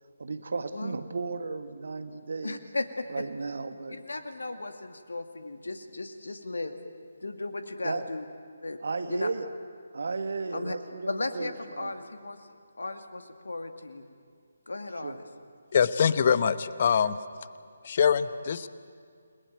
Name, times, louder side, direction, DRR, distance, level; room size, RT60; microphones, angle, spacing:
voice 1, 0.2-2.6 3.1-4.0 7.8-8.0 8.8-9.5 9.9-11.5 11.8-11.9 15.0-15.2, right 4 dB, 55° right, 9 dB, 1.7 m, -34 dB
voice 2, 2.4-3.2 3.9-6.7 7.2-8.2 8.6-8.8 9.1-9.3 10.5-10.8 11.1-12.4 12.8-14.1 14.7-15.2, left 2 dB, 65° left, 7 dB, 2.2 m, -35 dB
voice 3, 15.7-17.2 17.8-18.7, left 7 dB, 40° left, 14 dB, 0.9 m, -24 dB
29.5 x 20.0 x 9.2 m, 2.2 s
figure-of-eight pair, 145°, 0 cm